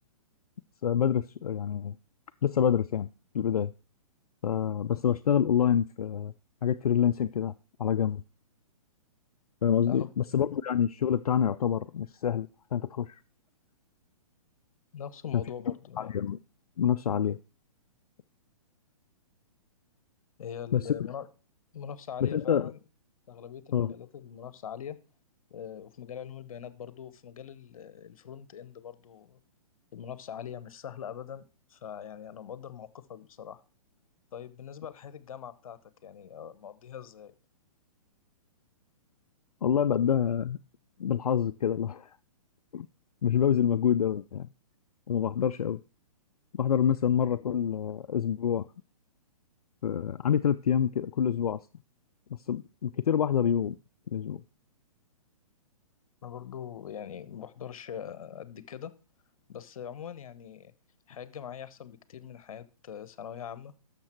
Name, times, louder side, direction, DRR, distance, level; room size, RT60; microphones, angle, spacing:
voice 1, 0.8-1.9 2.4-3.1 3.3-3.7 4.4-6.3 6.6-7.5 7.8-8.2 9.6-13.2 15.3-15.4 16.0-16.4 16.8-17.4 20.7-20.8 22.2-22.7 23.7-23.9 39.6-40.6 41.0-42.1 42.7-42.9 43.2-44.5 45.1-45.8 46.5-48.7 49.8-51.6 52.5-53.8 54.1-54.4, left 8 dB, 85° left, 0.4 m, -27 dB
voice 2, 14.9-16.1 20.4-21.3 21.7-22.8 23.3-25.0 25.5-29.4 29.9-33.6 34.3-37.3 56.2-58.9 59.5-60.7 61.1-63.7, left 8 dB, 65° left, 1.0 m, -42 dB
11.5 x 6.7 x 4.5 m
hypercardioid pair, 130°, 19 cm